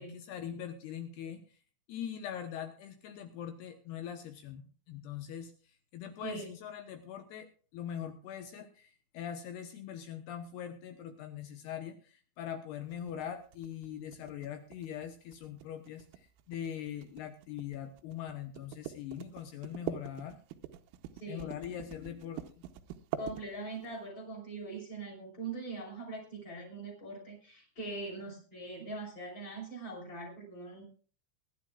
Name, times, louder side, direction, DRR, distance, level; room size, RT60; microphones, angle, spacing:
voice 1, 0.0-1.4 1.9-5.5 5.9-7.5 7.7-20.4 21.3-22.6, left 9 dB, 75° left, 7 dB, 2.6 m, -42 dB
voice 2, 6.2-6.5 21.1-21.5 23.2-30.8, right 3 dB, 30° left, 0 dB, 5.5 m, -42 dB
sound 1, 12.9-23.9, right 12 dB, 90° right, 3.5 m, -44 dB
22.5 x 11.5 x 2.4 m, 0.40 s
omnidirectional pair, 5.7 m